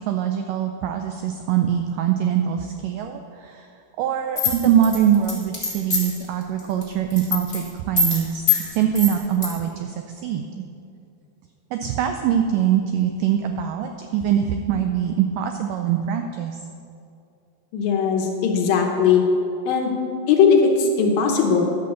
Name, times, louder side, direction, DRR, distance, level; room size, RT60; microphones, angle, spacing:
voice 1, 0.1-3.7 4.0-10.6 11.7-16.6, right 9 dB, 85° right, 5 dB, 1.9 m, -23 dB
sound 1, 4.4-6.2 6.6-6.8 7.1-7.6 8.0-8.2 8.5-8.6 8.9-9.5, left 5 dB, 15° left, 2.1 m, -22 dB
voice 2, 17.7-19.2 19.7-19.9 20.3-21.6, left 6 dB, 75° left, 2 dB, 2.6 m, -18 dB
11.5 x 6.8 x 6.8 m, 2.5 s
omnidirectional pair, 4.4 m